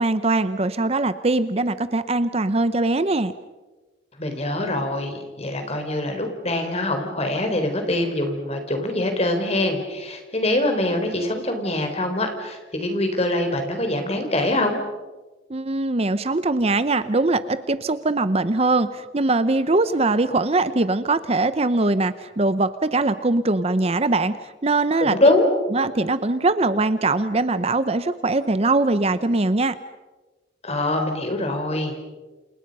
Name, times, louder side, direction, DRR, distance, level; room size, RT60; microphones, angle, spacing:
voice 1, 0.0-3.3 15.5-25.2 25.7-29.8, right 2 dB, 35° right, 13 dB, 0.7 m, -22 dB
voice 2, 4.2-14.8 25.0-25.5 30.6-32.0, left 1 dB, 35° left, 5 dB, 4.3 m, -24 dB
29.0 x 28.5 x 5.5 m, 1.2 s
head